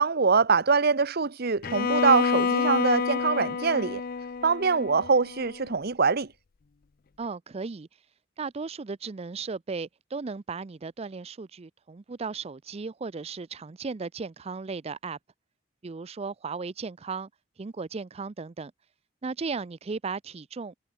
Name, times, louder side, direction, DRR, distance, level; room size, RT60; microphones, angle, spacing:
voice 1, 0.0-4.0 4.4-6.3, right 5 dB, 50° right, 0.9 m, -23 dB
Bowed string instrument, 1.6-5.6, left 5 dB, 50° left, 0.5 m, -28 dB
voice 2, 7.2-8.1 8.4-15.2 15.8-17.3 17.6-18.7 19.2-20.8, right 4 dB, 30° right, 0.4 m, -36 dB
head